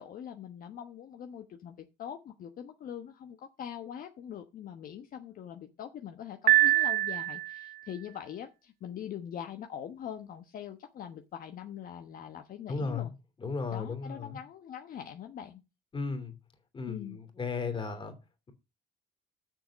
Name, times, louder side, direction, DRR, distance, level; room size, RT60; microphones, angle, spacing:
voice 1, 0.0-13.1 13.7-15.6 16.9-17.2, left 9 dB, 55° left, 6 dB, 1.2 m, -43 dB
Piano, 6.5-7.8, right 15 dB, 60° right, 0.5 m, -24 dB
voice 2, 12.7-13.1 13.4-14.4 15.9-16.3 16.7-18.1, left 4 dB, 30° left, 7 dB, 3.1 m, -35 dB
7.9 x 6.6 x 7.2 m, 0.27 s
cardioid pair, 110°, 17 cm